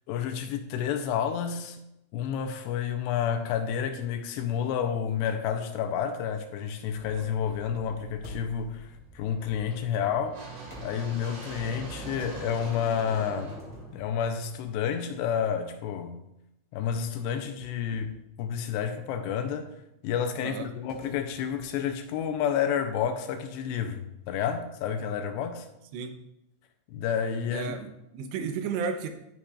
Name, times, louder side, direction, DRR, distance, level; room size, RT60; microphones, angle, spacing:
voice 1, 0.1-1.8 2.1-8.9 9.2-10.4 10.8-13.6 13.9-16.2 16.7-18.1 18.4-19.7 20.0-25.7 26.9-27.7, left 8 dB, 85° left, 2.8 m, -30 dB
sound 1, 6.9-15.0, right 3 dB, 60° right, 4.2 m, -44 dB
sound 2, 8.2-8.9 10.6-12.0 13.5-14.8 15.3-15.5 16.8-18.4 20.9-22.5, left 1 dB, 5° right, 2.3 m, -49 dB
voice 2, 27.5-29.1, right 6 dB, 80° right, 3.0 m, -33 dB
13.0 x 8.7 x 2.5 m
omnidirectional pair, 5.1 m